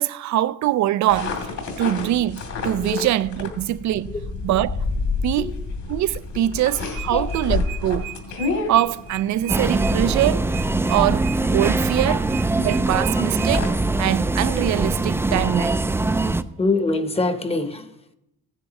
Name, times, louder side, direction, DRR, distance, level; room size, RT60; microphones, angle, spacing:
voice 1, 0.0-1.5 1.8-4.1 4.4-4.8 5.2-5.5 5.9-8.1 8.7-10.5 10.9-12.2 12.6-15.7, right 13 dB, 65° right, 0.5 m, -23 dB
sound 1, 1.1-13.7, left 3 dB, 70° left, 2.8 m, -30 dB
voice 2, 2.8-3.1 4.1-4.2 5.4-5.7 7.1-7.4 12.1-12.2 12.5-13.0 15.3-15.6 16.3-18.1, left 2 dB, 20° left, 0.9 m, -26 dB
sound 2, 6.7-13.5, right 14 dB, 35° right, 0.8 m, -37 dB
sound 3, 9.5-16.4, right 2 dB, 10° right, 0.4 m, -22 dB
15.5 x 10.0 x 3.0 m
cardioid pair, 90°, 30 cm